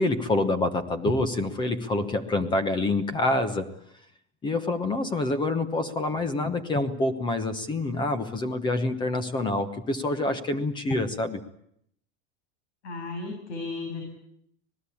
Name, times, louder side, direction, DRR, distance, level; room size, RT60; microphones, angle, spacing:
voice 1, 0.0-3.7 4.4-11.4, left 2 dB, 15° left, 11 dB, 1.1 m, -26 dB
voice 2, 12.8-14.0, left 3 dB, 70° left, 2 dB, 7.7 m, -34 dB
26.5 x 19.0 x 8.5 m, 0.72 s
supercardioid pair, 175°, 35 cm